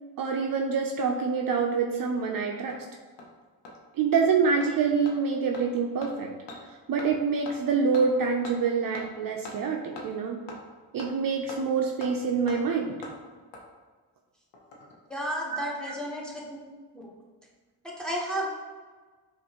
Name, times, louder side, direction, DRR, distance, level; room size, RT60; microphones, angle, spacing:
voice 1, 0.2-2.8 4.0-6.3 6.9-10.4 10.9-13.0 15.8-15.9, right 5 dB, 55° right, 2 dB, 0.5 m, -26 dB
Hammer, 1.8-1.9 2.2-2.3 2.7-2.8 3.2-3.3 3.6-3.7 4.1-4.2 4.6-4.7 5.1-5.2 5.5-5.6 6.0-6.1 6.5-6.6 7.0-7.1 7.5-7.6 7.9-8.0 8.4-8.5 8.9-9.0 9.4-9.5 10.0-10.1 10.5-10.6 11.0-11.1 11.5-11.6 12.0-12.1 12.5-12.6 13.0-13.1 13.5-13.6 14.5-14.9 15.2-15.3, left 2 dB, 80° left, 0.8 m, -42 dB
voice 2, 15.1-16.6 16.9-17.1 17.8-18.5, equal, ahead, -4 dB, 1.1 m, -32 dB
5.1 x 2.5 x 2.9 m, 1.4 s
cardioid pair, 65°, 41 cm